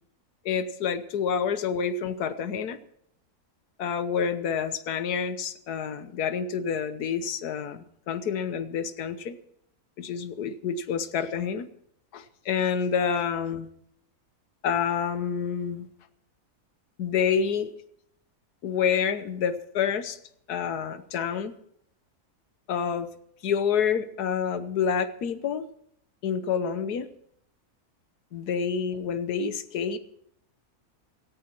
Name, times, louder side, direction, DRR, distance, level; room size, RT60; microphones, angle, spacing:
voice 1, 0.4-2.8 3.8-9.4 10.0-11.7 12.1-13.7 14.6-15.9 17.0-17.7 18.6-20.2 20.5-21.6 22.7-23.1 23.4-25.7 26.2-27.1 28.3-30.0, left 7 dB, 85° left, 11 dB, 1.5 m, -28 dB
17.5 x 14.5 x 4.5 m, 0.69 s
omnidirectional pair, 1.6 m